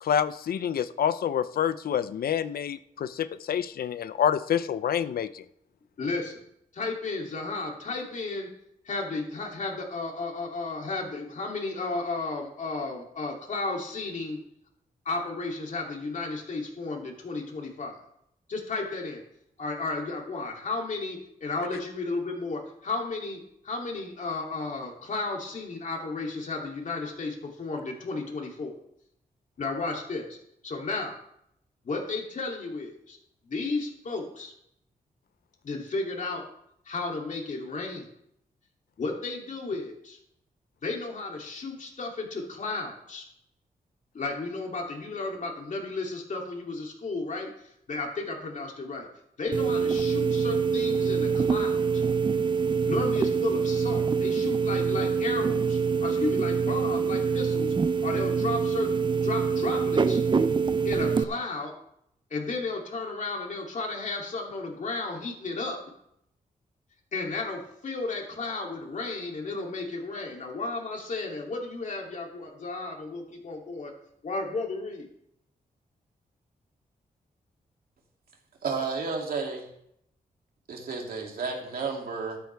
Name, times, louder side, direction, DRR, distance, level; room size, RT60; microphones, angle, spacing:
voice 1, 0.0-5.4, left 9 dB, 85° left, 13 dB, 0.6 m, -27 dB
voice 2, 6.0-6.4 6.7-8.5 8.8-14.4 15.0-18.0 18.5-19.2 19.6-28.7 29.6-30.4 30.6-31.1 31.8-33.2 33.4-34.5 35.6-36.4 36.8-38.1 39.0-40.2 40.8-43.3 44.1-49.1 49.4-52.0 52.8-57.7 58.0-60.2 60.8-61.7 62.3-65.8 67.1-73.9 74.2-75.1, left 3 dB, 55° left, 0 dB, 3.0 m, -33 dB
sound 1, 49.5-61.2, right 5 dB, 30° right, 0.6 m, -25 dB
voice 3, 78.6-79.7 80.7-82.4, right 4 dB, 80° right, 1 dB, 2.8 m, -32 dB
13.0 x 12.5 x 3.5 m, 0.73 s
wide cardioid pair, 120°, 15 cm